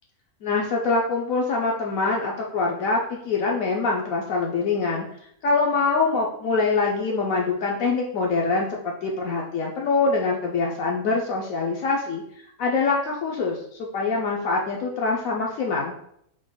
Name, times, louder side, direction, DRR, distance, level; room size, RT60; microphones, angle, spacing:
voice 1, 0.4-5.1 5.4-15.9, left 4 dB, 70° left, -1 dB, 1.0 m, -24 dB
4.9 x 3.7 x 2.3 m, 0.70 s
omnidirectional pair, 1.6 m